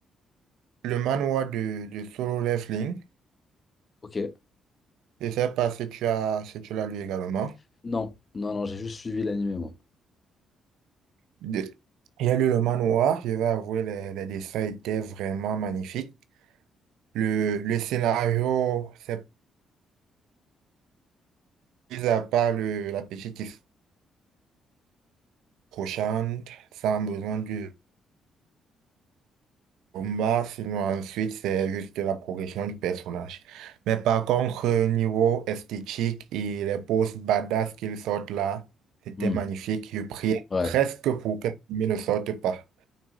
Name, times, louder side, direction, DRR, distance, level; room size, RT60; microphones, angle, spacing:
voice 1, 0.8-3.0 5.2-7.5 11.4-11.7 12.2-16.1 17.1-19.2 21.9-23.6 25.7-27.7 29.9-38.6 39.1-42.8, right 9 dB, 90° right, 0.8 m, -27 dB
voice 2, 7.8-9.7 39.2-39.4 40.5-40.7, left 3 dB, 30° left, 1.2 m, -29 dB
8.7 x 6.2 x 2.7 m
cardioid pair, 90°, 0 cm